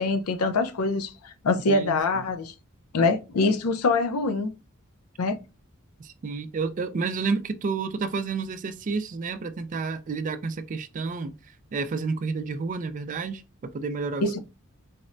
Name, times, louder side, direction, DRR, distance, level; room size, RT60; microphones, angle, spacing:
voice 1, 0.0-2.5 2.9-4.5 5.2-5.4 14.2-14.4, left 3 dB, 85° left, 0.5 m, -24 dB
voice 2, 1.6-2.0 6.0-11.3 11.7-14.4, right 4 dB, 35° right, 0.3 m, -30 dB
4.1 x 2.1 x 2.5 m
head